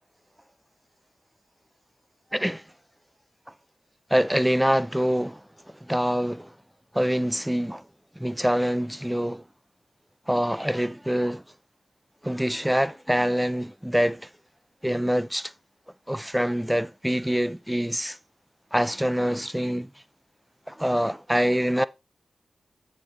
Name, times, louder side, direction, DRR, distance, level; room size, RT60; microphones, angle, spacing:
voice 1, 2.3-2.6 4.1-5.4 5.8-6.5 6.9-7.8 8.2-9.4 10.3-11.4 12.2-14.3 14.8-15.5 16.1-18.2 18.7-19.9 20.7-21.9, equal, 5° right, 0.5 m, -25 dB
7.3 x 6.6 x 3.2 m
cardioid pair, 50°, 0 cm